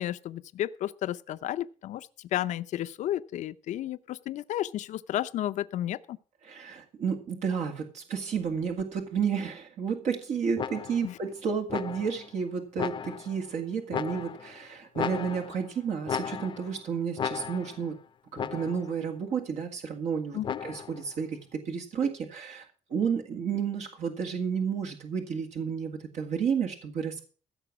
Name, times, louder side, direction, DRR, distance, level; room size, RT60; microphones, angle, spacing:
voice 1, 0.0-6.2 11.0-11.1 20.3-20.6, left 12 dB, 85° left, 0.6 m, -32 dB
voice 2, 6.4-18.0 18.3-27.2, right 6 dB, 70° right, 2.0 m, -31 dB
sound 1, 10.6-11.2 11.7-12.3 12.8-13.4 13.9-14.6 14.9-15.7 16.1-16.8 17.2-17.9 18.4-19.0 20.4-21.0, left 7 dB, 40° left, 0.6 m, -35 dB
15.0 x 6.9 x 6.0 m
cardioid pair, 125°, 12 cm